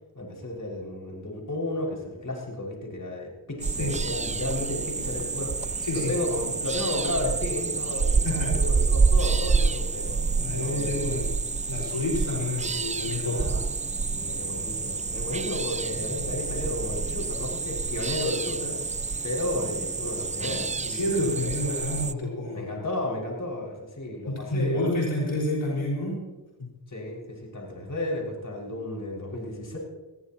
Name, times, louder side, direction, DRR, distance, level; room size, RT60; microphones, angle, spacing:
voice 1, 0.1-10.2 10.6-11.2 13.2-13.6 14.1-21.6 22.5-25.0 26.9-29.8, left 1 dB, 40° left, -2 dB, 6.2 m, -33 dB
sound 1, 3.6-22.1, right 4 dB, 15° right, 0.4 m, -28 dB
voice 2, 5.8-6.1 8.2-8.5 10.4-11.4 11.7-13.5 20.9-22.7 24.3-26.2 26.6-26.7, left 1 dB, 70° left, -4 dB, 5.5 m, -29 dB
21.0 x 16.0 x 3.1 m, 1.1 s
cardioid pair, 45°, 47 cm